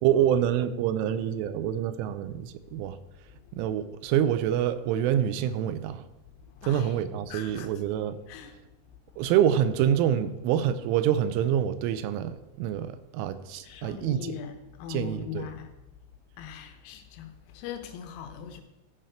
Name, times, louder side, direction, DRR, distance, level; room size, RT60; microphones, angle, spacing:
voice 1, 0.0-3.0 3.5-6.0 6.6-8.2 9.2-14.4 14.9-15.5, right 10 dB, 90° right, 3.1 m, -26 dB
voice 2, 6.3-6.9 7.3-7.7 8.3-8.6 13.6-15.7 16.4-18.6, left 9 dB, 85° left, 3.5 m, -40 dB
15.0 x 5.0 x 4.4 m
omnidirectional pair, 5.6 m